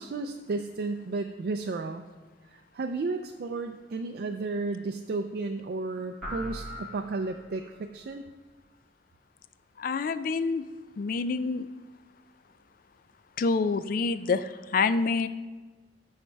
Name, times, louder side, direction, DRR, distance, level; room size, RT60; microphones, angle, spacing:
voice 1, 0.0-2.0 2.5-8.2, right 3 dB, 60° right, 5 dB, 0.4 m, -33 dB
sound 1, 6.2-7.8, left 1 dB, ahead, 1.5 m, -40 dB
voice 2, 9.8-10.6 11.0-11.7 13.4-15.3, left 4 dB, 55° left, 13 dB, 0.4 m, -27 dB
9.2 x 6.4 x 3.3 m, 1.3 s
head